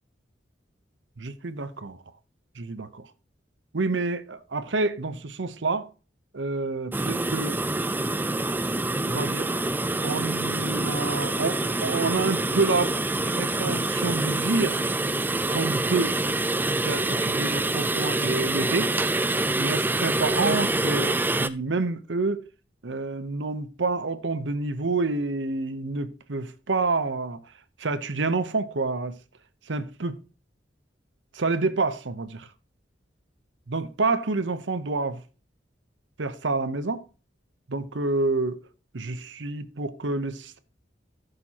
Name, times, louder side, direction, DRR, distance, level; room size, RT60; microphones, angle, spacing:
voice 1, 1.2-2.0 2.6-3.0 3.7-5.9 6.3-7.6 9.0-9.6 10.0-13.0 13.2-14.8 15.5-16.2 16.7-18.9 19.6-22.4 22.8-27.4 27.8-29.2 29.7-30.2 31.3-32.5 33.7-35.2 36.2-37.0 37.7-38.6 38.9-40.6, right 3 dB, 85° right, 0.9 m, -28 dB
sound 1, 6.9-21.5, right 2 dB, 10° right, 0.4 m, -26 dB
14.0 x 6.7 x 2.9 m
head